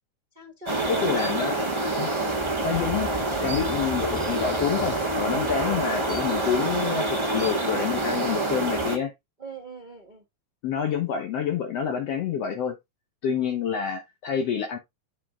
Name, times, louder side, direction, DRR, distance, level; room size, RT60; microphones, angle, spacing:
voice 1, 0.3-1.3 5.6-5.8 9.4-10.2 13.4-13.5, right 2 dB, 65° right, 0.4 m, -39 dB
sound 1, 0.7-9.0, right 2 dB, 25° right, 0.6 m, -27 dB
voice 2, 0.9-1.6 2.0-2.1 2.6-3.1 3.4-9.1 10.6-12.8 13.2-14.8, left 7 dB, 65° left, 2.1 m, -28 dB
9.0 x 4.1 x 3.6 m
omnidirectional pair, 3.4 m